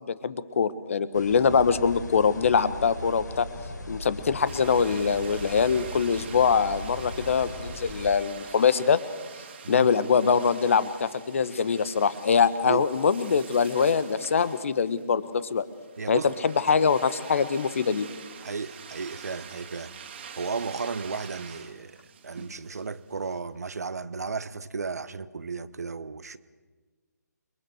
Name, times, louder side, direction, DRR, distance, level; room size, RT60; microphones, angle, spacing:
voice 1, 0.0-3.5 3.9-9.0 9.7-15.6 16.1-18.1, left 6 dB, 45° left, 15 dB, 1.3 m, -23 dB
sound 1, 1.1-8.1, left 1 dB, 75° left, 5.6 m, -39 dB
sound 2, 4.4-23.4, right 7 dB, 35° right, 2.4 m, -46 dB
voice 2, 16.0-16.3 18.4-19.9 20.4-22.0 22.2-26.4, right 4 dB, 60° right, 14 dB, 1.2 m, -34 dB
29.0 x 22.5 x 6.5 m, 1.3 s
figure-of-eight pair, 145°, 10 cm